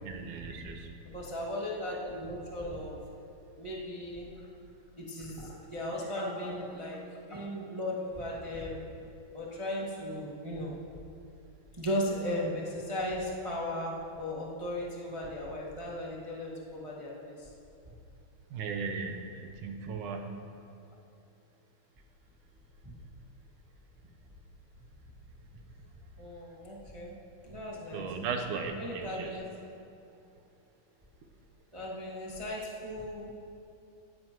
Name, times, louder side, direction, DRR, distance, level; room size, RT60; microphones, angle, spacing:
voice 1, 0.0-0.9 18.5-20.4 27.9-29.4, right 5 dB, 75° right, 4 dB, 2.3 m, -37 dB
voice 2, 1.0-3.0 3.6-4.3 5.0-8.8 9.3-10.8 11.8-17.5 22.8-23.0 26.2-27.1 27.4-28.1 28.7-29.5 31.7-33.3, left 1 dB, 25° right, -5 dB, 0.6 m, -36 dB
19.0 x 15.5 x 3.0 m, 2.7 s
omnidirectional pair, 3.8 m